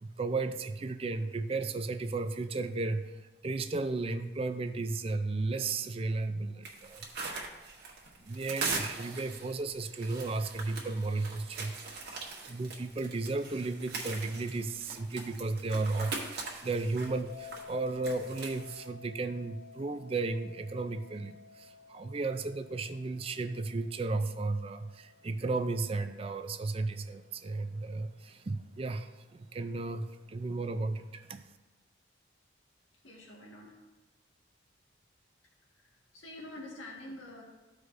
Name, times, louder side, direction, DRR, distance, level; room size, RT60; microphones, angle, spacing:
voice 1, 0.0-7.1 8.2-11.7 12.5-31.4, right 3 dB, 30° right, 9 dB, 0.4 m, -34 dB
sound 1, 6.6-18.9, right 4 dB, 55° right, 1.3 m, -41 dB
sound 2, 17.3-28.2, left 5 dB, 55° left, 1.9 m, -54 dB
voice 2, 33.0-33.8 35.7-37.4, left 1 dB, 90° left, -3 dB, 1.6 m, -47 dB
14.0 x 4.8 x 2.5 m, 1.1 s
head